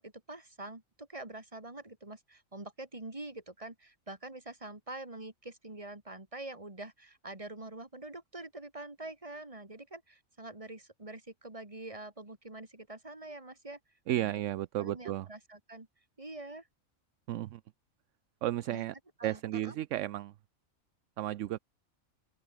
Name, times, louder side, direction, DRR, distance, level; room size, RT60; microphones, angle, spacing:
voice 1, 0.0-13.8 14.2-14.4 14.8-15.9 16.2-16.7 18.7-18.9 19.2-19.8, right 2 dB, 25° right, 2.9 m, -45 dB
voice 2, 14.1-15.3 17.3-17.6 18.4-18.9 19.2-20.3 21.2-21.6, right 13 dB, 70° right, 0.9 m, -33 dB
open air
omnidirectional pair, 1.4 m